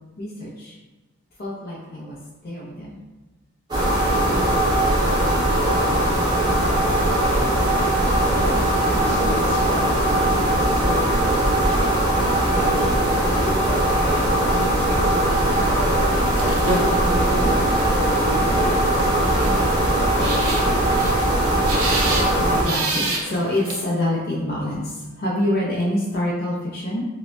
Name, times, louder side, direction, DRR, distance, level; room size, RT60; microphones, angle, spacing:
voice 1, 0.2-0.8 1.4-2.2 2.4-3.0 17.4-17.6 20.6-21.3 22.5-27.0, left 1 dB, 45° left, -5 dB, 0.5 m, -26 dB
sound 1, 3.7-22.6, right 1 dB, 20° right, 0.8 m, -20 dB
voice 2, 8.4-12.0 12.5-15.3 15.7-16.6 17.0-19.7 20.0-20.6, equal, 5° left, -9 dB, 1.0 m, -32 dB
sound 2, 15.3-23.7, right 2 dB, 75° right, 0.6 m, -29 dB
5.0 x 2.1 x 2.2 m, 1.1 s
head